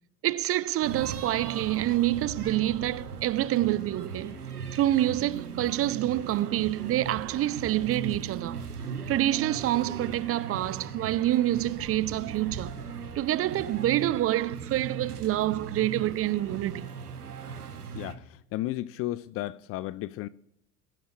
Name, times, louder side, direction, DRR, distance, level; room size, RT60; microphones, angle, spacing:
voice 1, 0.2-4.3 4.7-8.6 9.1-12.7 13.2-16.9, right 14 dB, 30° right, 0.6 m, -27 dB
sound 1, 0.8-18.1, right 6 dB, 90° right, 1.4 m, -38 dB
voice 2, 18.5-20.3, left 16 dB, 35° left, 0.4 m, -33 dB
22.0 x 12.0 x 3.3 m
hypercardioid pair, 75°, 44 cm